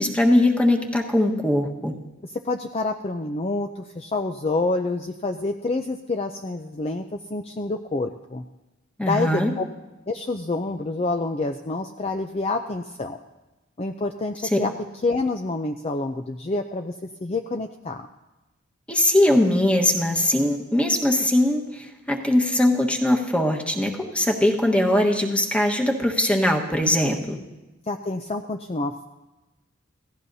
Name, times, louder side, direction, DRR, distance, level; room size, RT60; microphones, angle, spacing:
voice 1, 0.0-1.9 9.0-9.5 14.5-14.7 18.9-27.4, left 1 dB, 5° left, 1 dB, 1.3 m, -21 dB
voice 2, 2.2-8.4 9.0-9.6 10.1-13.2 13.8-14.7 15.0-18.1 27.9-29.0, left 2 dB, 30° left, 5 dB, 0.5 m, -28 dB
26.5 x 16.5 x 2.7 m, 1.1 s
head